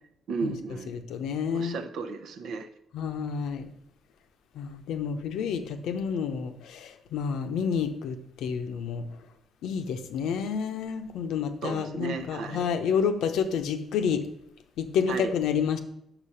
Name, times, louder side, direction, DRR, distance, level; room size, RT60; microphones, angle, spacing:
voice 1, 0.3-0.9 1.5-2.7 11.6-12.6 15.1-15.3, right 4 dB, 75° right, 8 dB, 0.8 m, -34 dB
voice 2, 0.9-1.8 2.9-3.7 4.6-9.0 9.6-14.2 14.8-15.8, left 6 dB, 85° left, 7 dB, 0.7 m, -29 dB
6.0 x 5.0 x 5.6 m, 0.78 s
cardioid pair, 90°, 0 cm